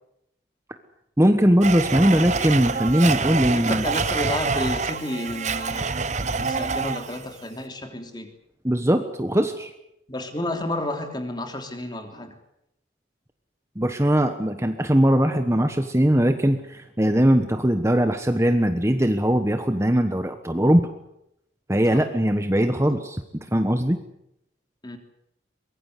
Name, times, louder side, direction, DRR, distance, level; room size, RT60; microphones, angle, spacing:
voice 1, 1.2-3.8 8.6-9.7 13.8-20.9 21.7-23.2 23.5-24.0, equal, 15° right, 7 dB, 1.2 m, -20 dB
Domestic sounds home sounds, 1.6-7.3, right 4 dB, 40° right, 1.1 m, -26 dB
voice 2, 3.4-5.9 6.2-8.3 10.1-12.3 21.9-22.0 22.8-23.0 24.8-25.0, left 1 dB, 25° left, 5 dB, 3.2 m, -31 dB
24.0 x 21.5 x 8.3 m, 0.81 s
head